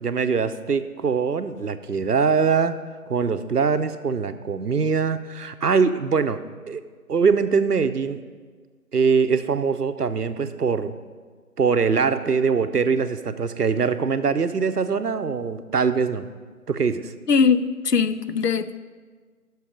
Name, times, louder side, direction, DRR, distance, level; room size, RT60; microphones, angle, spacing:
voice 1, 0.0-2.8 3.1-6.4 6.7-6.8 7.1-8.2 8.9-10.9 11.6-16.3 16.7-17.1, right 5 dB, 75° right, 11 dB, 0.7 m, -22 dB
voice 2, 17.3-18.8, left 5 dB, 80° left, 13 dB, 0.6 m, -21 dB
10.0 x 6.4 x 5.0 m, 1.5 s
figure-of-eight pair, 180°, 47 cm